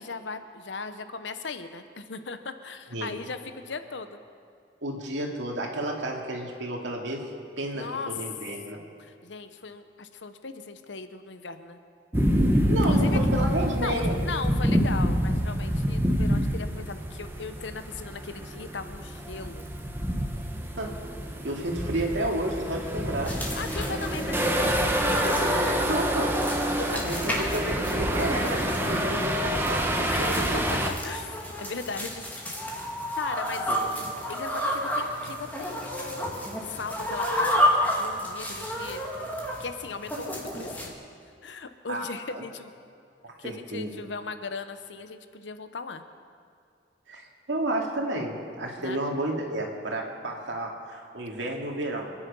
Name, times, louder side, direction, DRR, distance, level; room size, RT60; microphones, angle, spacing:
voice 1, 0.0-4.2 7.7-8.1 9.0-11.8 12.7-13.2 13.8-19.6 23.6-24.4 26.8-27.4 30.1-32.3 33.2-33.7 34.3-39.0 39.6-40.9 41.4-42.7 43.4-46.0 48.8-49.0, left 4 dB, 85° left, 9 dB, 0.9 m, -38 dB
voice 2, 4.8-7.2 7.6-8.8 12.7-14.2 20.8-21.0 21.4-23.3 25.2-26.3 27.0-30.6 33.7-34.3 41.9-42.0 42.3-42.4 43.2-44.0 47.1-52.1, right 1 dB, 85° right, 0 dB, 2.3 m, -31 dB
sound 1, 12.1-30.9, equal, 10° right, 1.1 m, -27 dB
sound 2, 23.3-40.9, equal, 10° left, 2.1 m, -31 dB
26.5 x 9.9 x 5.5 m, 2.3 s
head